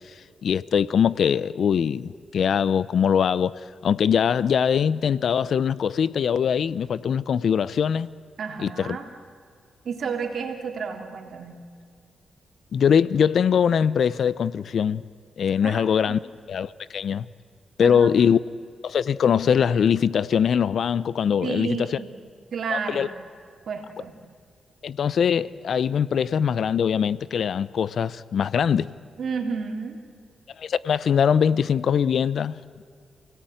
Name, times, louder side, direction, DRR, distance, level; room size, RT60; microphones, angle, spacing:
voice 1, 0.4-3.5 3.8-8.1 8.6-9.0 12.7-15.0 15.4-16.2 16.5-17.3 17.8-18.4 18.8-22.0 22.7-23.1 24.8-28.9 30.6-32.8, left 7 dB, 65° left, 0.6 m, -22 dB
voice 2, 8.4-9.1 9.8-11.6 15.6-16.2 17.8-18.2 21.4-22.1 22.5-23.1 23.7-24.1 29.2-30.0, right 5 dB, 65° right, 3.3 m, -31 dB
29.0 x 17.5 x 9.3 m
cardioid pair, 70°, 0 cm